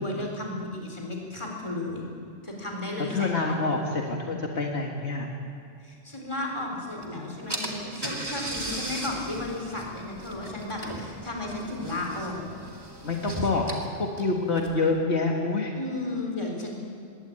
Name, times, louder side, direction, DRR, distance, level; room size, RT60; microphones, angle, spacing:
voice 1, 0.0-2.0 2.4-3.7 5.8-12.5 15.8-16.8, left 2 dB, 25° left, 0 dB, 4.2 m, -34 dB
voice 2, 3.1-5.3 13.0-15.7 16.7-16.8, left 3 dB, 65° left, 0 dB, 2.0 m, -27 dB
Car / Engine, 7.0-7.1 7.5-14.9, right 1 dB, 20° right, 2.4 m, -37 dB
21.5 x 17.5 x 8.8 m, 2.4 s
omnidirectional pair, 1.2 m